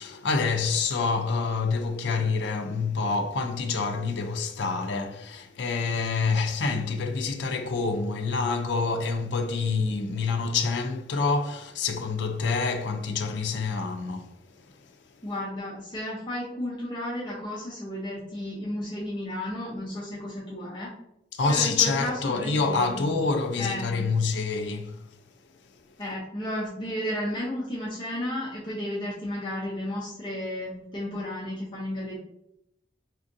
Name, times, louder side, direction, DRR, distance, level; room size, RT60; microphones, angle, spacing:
voice 1, 0.0-14.8 21.3-25.0, left 4 dB, 80° left, 0.4 m, -27 dB
voice 2, 15.2-20.9 21.5-23.0 23.6-23.9 26.0-32.2, left 1 dB, 25° left, 0.6 m, -33 dB
4.3 x 2.5 x 2.5 m
head